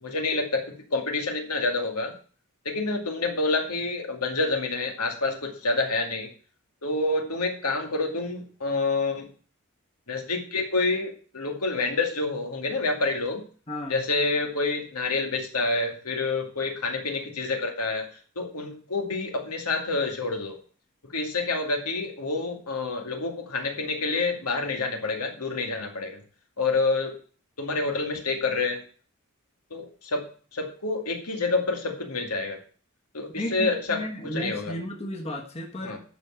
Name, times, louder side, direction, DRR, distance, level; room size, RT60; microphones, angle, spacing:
voice 1, 0.0-2.1 2.6-6.3 6.8-9.3 10.1-13.4 13.9-18.0 18.4-20.6 21.1-26.2 26.6-27.1 27.6-28.8 29.7-30.2 30.5-32.6 33.1-34.0 34.3-34.7 35.8-36.0, left 3 dB, 85° left, 3 dB, 2.4 m, -28 dB
voice 2, 13.7-14.0 33.3-36.0, left 1 dB, 30° left, 2 dB, 1.4 m, -34 dB
12.0 x 4.7 x 7.5 m, 0.41 s
head